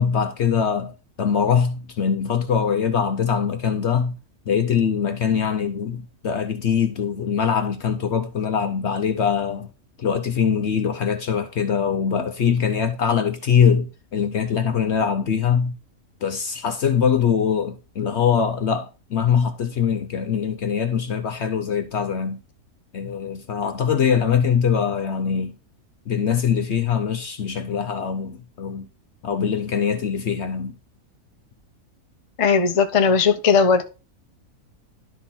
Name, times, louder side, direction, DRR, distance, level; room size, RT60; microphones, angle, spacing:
voice 1, 0.0-4.2 4.5-9.7 10.0-15.7 16.2-22.4 22.9-25.6 26.1-28.9 29.2-30.7, left 7 dB, 60° left, 0.8 m, -22 dB
voice 2, 32.4-33.8, left 5 dB, 35° left, 0.6 m, -17 dB
11.5 x 3.8 x 4.2 m
omnidirectional pair, 1.6 m